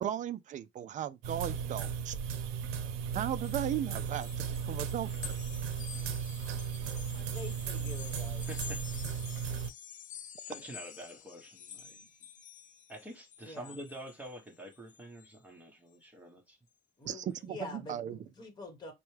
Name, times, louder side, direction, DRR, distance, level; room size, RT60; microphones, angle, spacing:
voice 1, 0.0-2.2 3.1-5.4 17.1-18.2, right 10 dB, 40° right, 0.4 m, -36 dB
sound 1, 1.2-9.7, right 7 dB, 85° right, 0.7 m, -36 dB
sound 2, 3.3-15.4, left 9 dB, 40° left, 0.5 m, -50 dB
voice 2, 7.1-8.5 13.4-13.7 17.0-18.9, left 3 dB, 20° left, 1.4 m, -46 dB
voice 3, 8.3-8.9 10.4-12.1 12.9-16.6 17.0-17.2, equal, 5° right, 1.2 m, -47 dB
4.4 x 2.2 x 3.2 m
cardioid pair, 135°, 21 cm